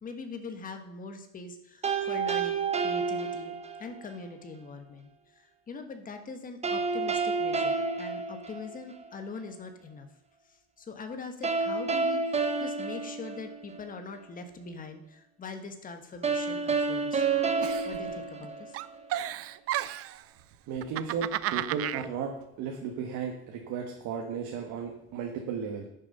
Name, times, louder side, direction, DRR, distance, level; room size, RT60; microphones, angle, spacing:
voice 1, 0.0-3.5 3.8-10.1 10.5-17.4 17.8-18.8, left 4 dB, 30° left, 6 dB, 1.3 m, -42 dB
sound 1, 1.8-4.0 6.6-9.1 11.4-14.0 16.2-19.1, right 4 dB, 20° right, 0.9 m, -30 dB
Giggle, 17.6-18.5 18.7-20.2 20.8-22.0, right 14 dB, 50° right, 0.4 m, -33 dB
voice 2, 20.7-22.3 22.6-25.9, right 6 dB, 75° right, 2 dB, 1.5 m, -34 dB
11.0 x 6.6 x 5.4 m, 0.79 s
cardioid pair, 140°, 30 cm